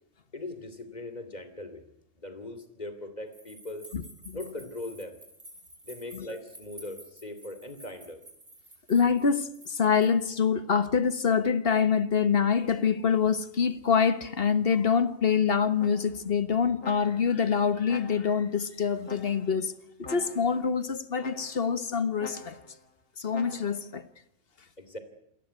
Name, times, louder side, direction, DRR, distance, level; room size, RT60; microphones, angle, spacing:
voice 1, 0.3-1.9 2.2-3.9 4.3-5.2 5.8-8.2 24.8-25.0, left 2 dB, 30° left, 2.8 m, -40 dB
sound 1, 3.3-10.3, right 1 dB, 45° right, 5.3 m, -51 dB
voice 2, 3.9-4.4 6.1-6.3 8.9-19.7 20.0-22.6 23.2-24.0, left 6 dB, 50° left, 1.4 m, -25 dB
sound 2, 15.8-16.3 16.8-17.4 17.9-18.5 19.0-19.6 20.0-20.7 21.2-21.8 22.2-22.8 23.3-23.9, left 3 dB, 80° left, 2.8 m, -46 dB
28.0 x 14.5 x 9.5 m
omnidirectional pair, 1.3 m